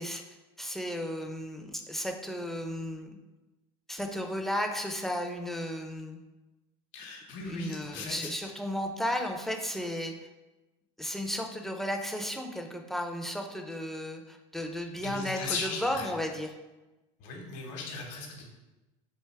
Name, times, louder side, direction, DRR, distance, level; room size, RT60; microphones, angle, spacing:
voice 1, 0.0-3.1 3.9-6.2 7.4-10.1 11.0-16.5, equal, ahead, 3 dB, 0.4 m, -34 dB
voice 2, 6.9-8.5 15.0-16.1 17.2-18.4, left 4 dB, 60° left, -1 dB, 0.9 m, -38 dB
3.4 x 2.6 x 4.5 m, 1.1 s
supercardioid pair, 115°, 15 cm